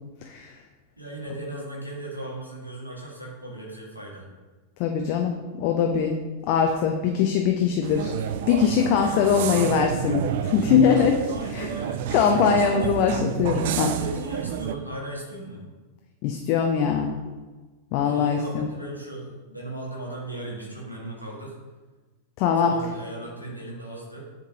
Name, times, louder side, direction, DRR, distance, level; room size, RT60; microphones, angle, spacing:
voice 1, 0.2-0.5 4.8-6.1 6.5-8.1 8.4-11.7 12.1-14.0 16.2-17.1 17.9-18.6 22.4-22.7, left 7 dB, 45° left, 3 dB, 0.5 m, -22 dB
voice 2, 1.0-4.3 11.3-13.0 13.9-15.6 18.0-21.5 22.6-24.2, right 1 dB, 85° right, -2 dB, 1.4 m, -37 dB
sound 1, 7.8-14.8, right 9 dB, 55° right, 0.3 m, -29 dB
10.5 x 3.7 x 2.8 m, 1.3 s
figure-of-eight pair, 90°, 0 cm